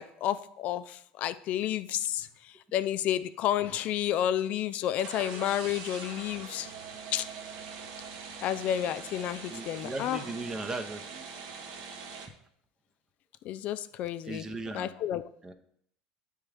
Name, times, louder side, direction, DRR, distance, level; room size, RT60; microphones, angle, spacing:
voice 1, 0.0-6.7 7.1-7.3 8.4-10.2 13.4-14.5 14.7-15.3, left 11 dB, 55° left, 13 dB, 0.4 m, -31 dB
sound 1, 4.9-12.3, right 5 dB, 75° right, 0.9 m, -43 dB
voice 2, 9.5-11.2 14.2-14.9 15.4-15.5, right 2 dB, 20° right, 8 dB, 0.7 m, -37 dB
9.5 x 3.6 x 3.4 m, 0.68 s
supercardioid pair, 110°, 3 cm